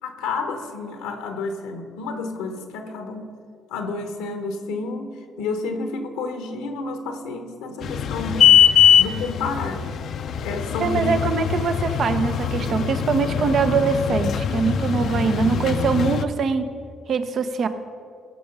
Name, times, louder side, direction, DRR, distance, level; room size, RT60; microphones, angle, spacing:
voice 1, 0.0-3.3 3.7-8.6 9.0-9.9 10.4-11.1, left 3 dB, 90° left, 6 dB, 1.0 m, -30 dB
sound 1, 7.8-16.2, left 8 dB, 65° left, 0.5 m, -21 dB
voice 2, 10.8-16.7 17.1-17.7, right 5 dB, 55° right, 10 dB, 0.7 m, -23 dB
16.0 x 6.2 x 5.3 m, 2.3 s
supercardioid pair, 65°, 0 cm